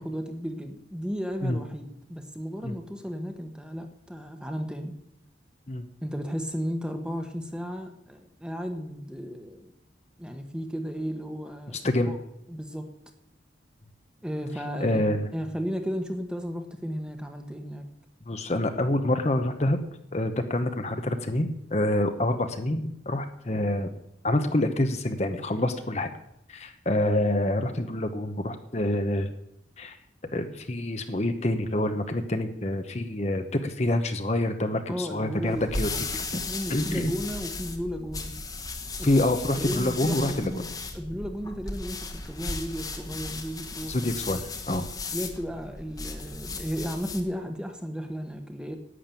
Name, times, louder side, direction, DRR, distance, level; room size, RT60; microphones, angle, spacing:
voice 1, 0.0-5.0 6.0-9.7 10.2-12.2 12.5-12.9 14.2-15.0 15.3-17.9 34.9-38.4 39.0-39.2 39.6-40.7 40.9-44.4 45.1-48.8, equal, 5° right, 6 dB, 1.2 m, -34 dB
voice 2, 14.8-15.3 18.3-19.8 20.1-23.9 24.2-26.1 26.5-29.3 29.8-30.0 30.3-36.2 36.7-37.1 39.0-40.5 43.9-44.8, left 1 dB, 35° left, 7 dB, 0.9 m, -27 dB
sound 1, 35.4-47.3, left 3 dB, 20° left, 1.2 m, -36 dB
11.0 x 8.7 x 9.0 m, 0.80 s
head